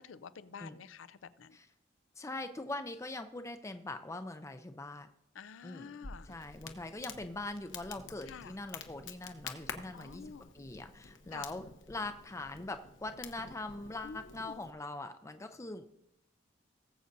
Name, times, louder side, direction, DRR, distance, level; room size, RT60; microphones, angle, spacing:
voice 1, 0.0-1.6 5.3-6.3 8.3-8.5 9.9-10.5 11.3-11.5 14.0-14.6, left 6 dB, 85° left, 16 dB, 0.5 m, -49 dB
voice 2, 2.2-5.1 5.6-6.0 6.2-16.1, left 2 dB, 15° left, 8 dB, 0.5 m, -42 dB
Crackle, 6.0-14.7, left 5 dB, 70° left, 1.0 m, -49 dB
19.0 x 7.8 x 2.7 m, 0.87 s
head